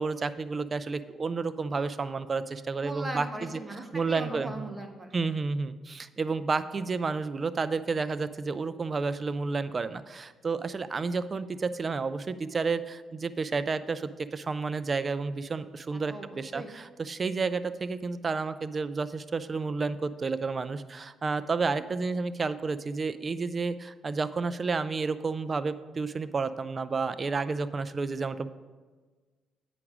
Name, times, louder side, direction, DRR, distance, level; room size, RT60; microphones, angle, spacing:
voice 1, 0.0-2.4 2.7-3.5 3.9-4.5 5.1-5.7 6.2-9.9 10.4-11.4 11.8-12.2 12.5-12.8 13.2-14.0 14.5-16.1 16.5-16.6 17.1-19.1 19.3-20.0 20.2-20.8 21.2-23.7 24.0-28.5, right 4 dB, 35° right, 13 dB, 0.4 m, -30 dB
voice 2, 2.8-5.2 15.9-16.8, right 2 dB, 15° right, 3 dB, 1.3 m, -39 dB
8.5 x 6.0 x 4.9 m, 1.4 s
cardioid pair, 90°, 0 cm